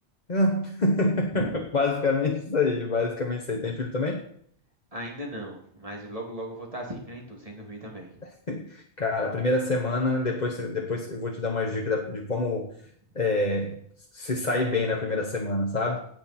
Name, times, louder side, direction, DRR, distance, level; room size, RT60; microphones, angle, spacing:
voice 1, 0.3-4.2 8.2-12.7 13.1-13.8 14.1-16.0, left 2 dB, 40° left, 1 dB, 1.3 m, -26 dB
voice 2, 4.9-8.1, right 1 dB, 30° right, -1 dB, 2.9 m, -37 dB
17.5 x 6.5 x 4.4 m, 0.62 s
omnidirectional pair, 1.2 m